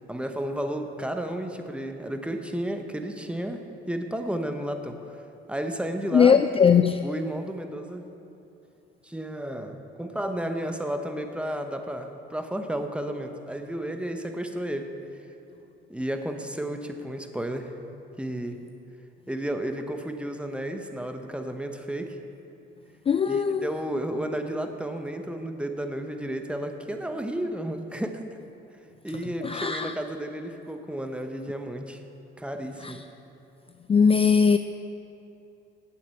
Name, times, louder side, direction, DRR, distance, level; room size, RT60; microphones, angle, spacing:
voice 1, 0.0-5.1 5.5-6.4 7.0-8.1 9.0-14.9 15.9-17.8 18.2-18.6 19.3-22.2 23.3-28.2 29.0-32.0 32.4-33.0, right 1 dB, 5° right, 0.9 m, -32 dB
voice 2, 6.1-7.0 23.1-23.6 29.5-29.9 33.9-34.6, left 6 dB, 30° left, 0.3 m, -19 dB
8.6 x 7.7 x 8.4 m
cardioid pair, 90°, 20 cm